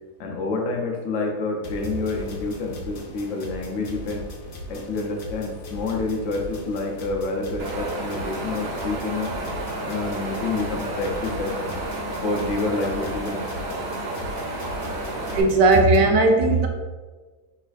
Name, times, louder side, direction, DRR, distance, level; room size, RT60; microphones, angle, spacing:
voice 1, 0.2-4.2 4.7-9.3 9.8-11.8 12.2-13.5, left 3 dB, 65° left, 0 dB, 0.8 m, -28 dB
sound 1, 1.6-16.0, left 2 dB, 85° left, 0.4 m, -38 dB
Wind, 7.6-15.4, right 2 dB, 55° right, 1.0 m, -31 dB
voice 2, 15.3-16.7, right 2 dB, 80° right, 3 dB, 1.2 m, -17 dB
5.5 x 3.3 x 2.4 m, 1.3 s
omnidirectional pair, 1.8 m